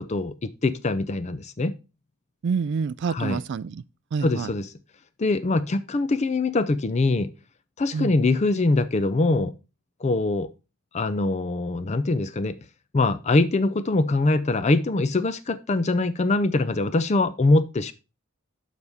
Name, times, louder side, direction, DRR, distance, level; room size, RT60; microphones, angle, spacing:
voice 1, 0.0-1.7 3.1-3.4 4.2-4.7 5.2-7.3 7.8-9.5 10.0-10.5 10.9-12.6 12.9-17.9, left 2 dB, 30° left, 0.5 m, -23 dB
voice 2, 2.4-3.8 4.1-4.5 7.9-8.1, right 5 dB, 55° right, 0.3 m, -27 dB
11.5 x 4.1 x 3.5 m
head